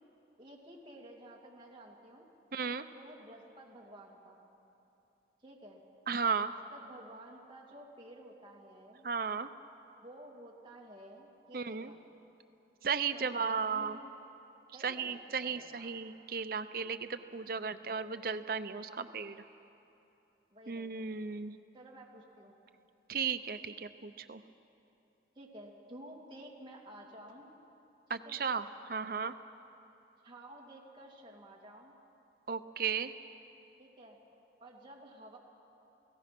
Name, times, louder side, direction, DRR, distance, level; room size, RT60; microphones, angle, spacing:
voice 1, 0.4-2.3 2.9-4.4 5.4-5.8 6.2-9.1 10.0-12.0 13.1-14.1 14.7-15.9 18.8-19.3 20.5-21.1 21.7-22.6 25.3-27.5 28.1-28.4 30.2-31.9 33.8-34.2 34.6-35.4, right 1 dB, 25° right, -2 dB, 2.6 m, -52 dB
voice 2, 2.5-2.8 6.1-6.5 9.0-9.5 11.5-11.9 12.8-14.0 14.8-19.3 20.7-21.5 23.1-24.4 28.1-29.3 32.5-33.1, right 5 dB, 55° right, 10 dB, 0.6 m, -35 dB
29.5 x 17.5 x 6.0 m, 2.9 s
head